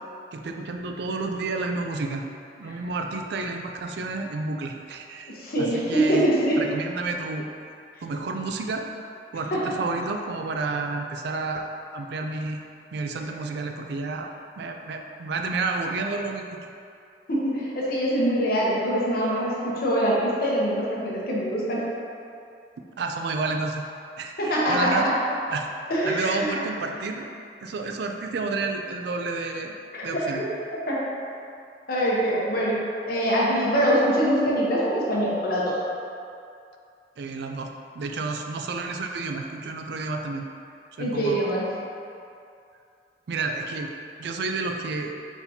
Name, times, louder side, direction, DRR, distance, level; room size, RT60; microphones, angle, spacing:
voice 1, 0.3-2.2 2.6-6.3 6.6-7.5 8.0-8.9 9.3-11.7 11.9-12.6 12.9-14.3 14.6-16.7 23.0-23.9 24.2-25.1 25.5-25.7 26.0-27.3 27.6-29.7 30.0-30.4 37.2-40.5 41.0-41.5 43.3-43.9 44.2-45.1, right 3 dB, 65° right, 4 dB, 0.4 m, -30 dB
voice 2, 5.3-6.6 9.5-9.6 13.1-13.2 17.3-21.8 24.4-25.1 25.9-26.6 29.9-30.2 30.9-31.0 31.9-35.8 41.0-41.6, equal, 60° left, -5 dB, 0.9 m, -24 dB
4.4 x 4.0 x 2.7 m, 2.5 s
head